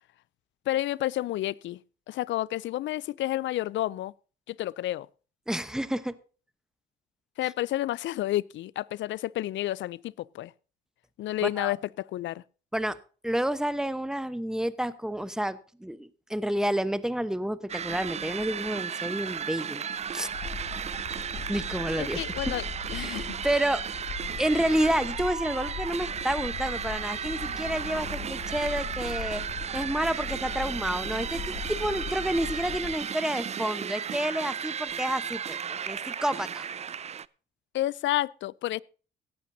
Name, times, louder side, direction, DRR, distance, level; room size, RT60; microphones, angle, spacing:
voice 1, 0.7-1.8 2.1-4.1 4.5-5.1 7.4-10.5 11.2-12.4 22.0-22.6 22.9-23.6 37.7-38.8, left 14 dB, 70° left, 0.4 m, -30 dB
voice 2, 5.5-6.1 11.4-11.7 12.7-13.0 13.2-19.9 20.1-20.3 21.5-22.2 22.9-23.8 24.4-29.4 29.7-36.7, right 1 dB, 5° right, 1.0 m, -29 dB
sound 1, 17.7-37.3, right 7 dB, 35° right, 0.4 m, -35 dB
sound 2, 20.3-33.0, left 6 dB, 85° left, 1.7 m, -40 dB
17.0 x 12.0 x 2.7 m
cardioid pair, 90°, 20 cm